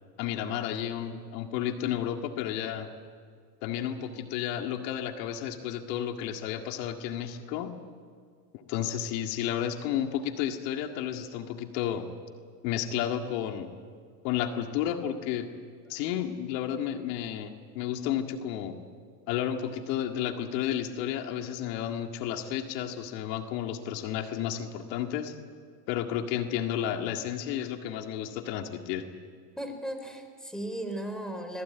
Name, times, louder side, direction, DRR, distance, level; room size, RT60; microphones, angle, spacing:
voice 1, 0.2-2.9 3.6-7.7 8.5-12.1 12.6-13.7 14.2-15.5 15.9-18.8 19.3-25.3 25.9-29.0, left 10 dB, 75° left, 5 dB, 2.1 m, -32 dB
voice 2, 29.6-31.6, right 1 dB, ahead, 6 dB, 4.5 m, -36 dB
26.0 x 19.5 x 9.3 m, 2.1 s
supercardioid pair, 105°, 50 cm